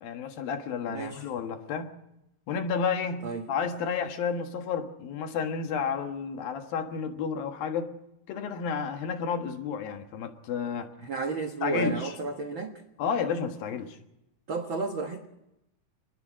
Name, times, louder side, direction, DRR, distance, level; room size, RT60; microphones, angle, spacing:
voice 1, 0.0-1.9 2.5-7.9 8.3-10.9 11.6-12.1 13.0-14.0, left 6 dB, 65° left, 3.1 m, -31 dB
voice 2, 0.9-1.3 3.2-3.4 11.0-12.8 14.5-15.2, right 3 dB, 85° right, 1.1 m, -32 dB
27.0 x 21.0 x 6.3 m
omnidirectional pair, 4.7 m